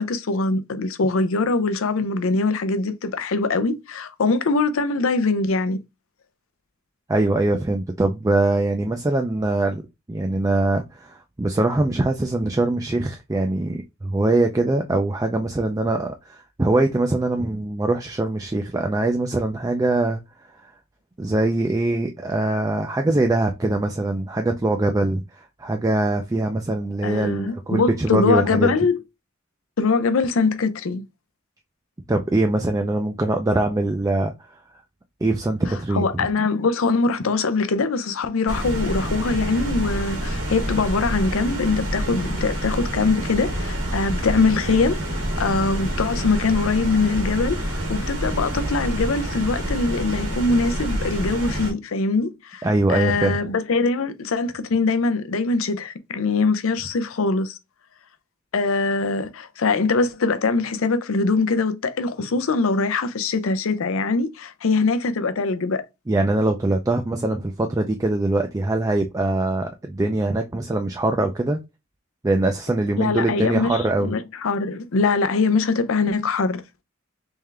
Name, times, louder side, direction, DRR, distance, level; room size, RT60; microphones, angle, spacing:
voice 1, 0.0-5.8 27.0-29.0 29.8-31.1 35.9-45.0 45.4-57.6 58.5-65.8 73.0-76.6, left 3 dB, 70° left, 0.5 m, -22 dB
voice 2, 7.1-9.8 10.1-20.2 21.2-28.7 32.1-34.3 35.2-36.3 52.6-53.4 66.1-71.6 72.2-74.1, right 2 dB, 15° right, 0.4 m, -22 dB
sound 1, 38.5-51.7, right 1 dB, 80° right, 1.7 m, -27 dB
3.6 x 3.3 x 3.3 m
head